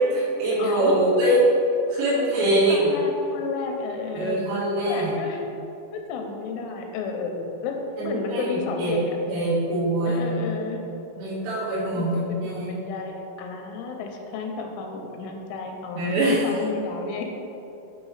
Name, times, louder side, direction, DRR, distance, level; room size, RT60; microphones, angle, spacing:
voice 1, 0.0-1.4 1.9-2.9 4.1-5.1 8.0-8.9 9.2-10.5 11.2-12.7 16.0-16.4, right 1 dB, 80° right, -11 dB, 4.3 m, -23 dB
voice 2, 0.6-1.0 2.7-4.4 4.8-5.4 5.9-9.2 10.0-10.8 12.0-17.2, left 4 dB, 85° left, 2 dB, 3.2 m, -32 dB
9.0 x 3.4 x 4.8 m, 2.9 s
omnidirectional pair, 5.9 m